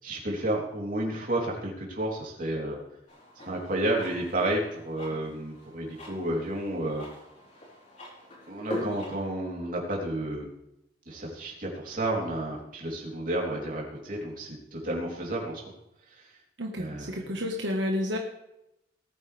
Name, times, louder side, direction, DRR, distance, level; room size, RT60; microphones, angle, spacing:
voice 1, 0.0-2.8 3.4-7.0 8.5-10.5 11.1-15.6 16.8-17.2, right 1 dB, 50° right, -2 dB, 3.5 m, -31 dB
sound 1, 3.1-9.3, left 1 dB, 40° left, 4.0 m, -42 dB
voice 2, 16.6-18.2, left 1 dB, 85° right, 1 dB, 1.5 m, -30 dB
19.5 x 9.1 x 3.5 m, 0.84 s
head